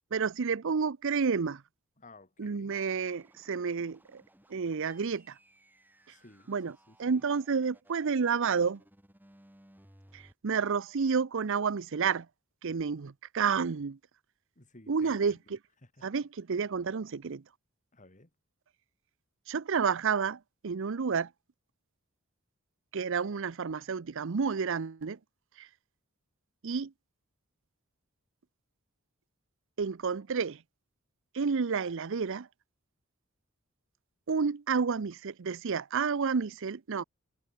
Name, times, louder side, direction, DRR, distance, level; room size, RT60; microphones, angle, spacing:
voice 1, 0.1-1.6 2.4-4.2 4.5-5.4 6.5-8.8 10.1-12.3 12.6-14.0 14.9-15.6 16.0-17.4 19.5-21.3 22.9-25.2 25.6-25.7 26.6-26.9 29.8-30.6 31.3-32.5 34.3-37.0, right 5 dB, 60° right, 0.6 m, -30 dB
voice 2, 2.0-2.7 6.1-6.6 6.9-7.3 14.6-15.4 15.8-16.0 17.9-18.3, left 2 dB, 35° left, 3.0 m, -55 dB
sound 1, 2.9-10.3, right 1 dB, 10° right, 4.5 m, -61 dB
head